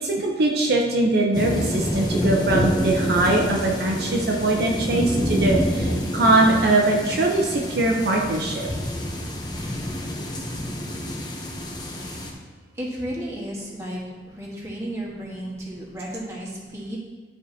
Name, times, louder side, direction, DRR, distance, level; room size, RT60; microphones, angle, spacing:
voice 1, 0.0-8.7, right 2 dB, 60° right, -1 dB, 0.7 m, -21 dB
sound 1, 1.3-12.3, equal, 25° left, 0.9 m, -27 dB
voice 2, 12.7-14.0 14.3-17.0, equal, 15° right, -5 dB, 1.5 m, -33 dB
11.0 x 4.7 x 2.8 m, 1.4 s
head